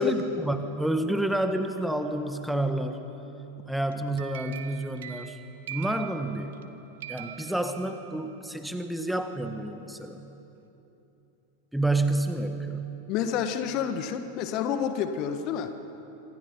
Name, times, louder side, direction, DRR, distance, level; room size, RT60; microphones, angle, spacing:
voice 1, 0.0-3.0 3.7-5.4 5.7-6.6 7.1-10.3 11.7-12.8, right 1 dB, ahead, 7 dB, 1.5 m, -29 dB
sound 1, 3.9-6.7 7.0-8.3, right 11 dB, 55° right, 1.3 m, -43 dB
voice 2, 13.1-15.7, left 8 dB, 40° left, 9 dB, 1.6 m, -28 dB
26.5 x 26.0 x 5.6 m, 2.9 s
figure-of-eight pair, 90°, 0 cm